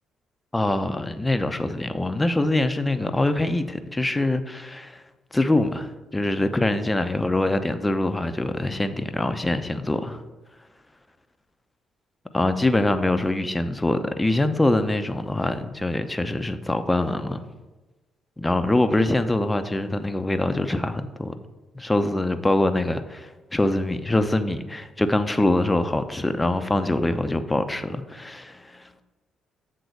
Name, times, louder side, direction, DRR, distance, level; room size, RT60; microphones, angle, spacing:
voice 1, 0.5-5.0 5.3-10.2 12.3-17.5 18.4-21.4 21.7-28.8, left 2 dB, 15° left, 9 dB, 0.8 m, -24 dB
8.0 x 3.8 x 6.7 m, 1.2 s
hypercardioid pair, 45°, 0 cm